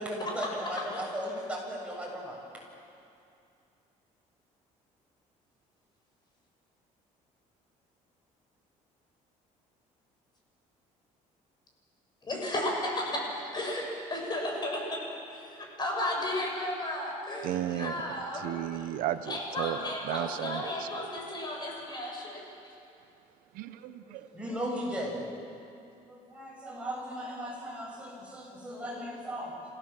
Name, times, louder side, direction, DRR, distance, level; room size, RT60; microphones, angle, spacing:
voice 1, 0.0-2.4 24.3-25.3 26.0-29.6, equal, 10° right, -3 dB, 7.4 m, -36 dB
voice 2, 12.2-15.0 15.3-18.9 19.2-22.5, left 1 dB, 30° left, 0 dB, 6.5 m, -34 dB
voice 3, 17.4-17.9 18.3-21.1 23.5-24.3, right 12 dB, 80° right, 12 dB, 0.8 m, -34 dB
27.5 x 16.5 x 7.5 m, 2.5 s
cardioid pair, 105°, 14 cm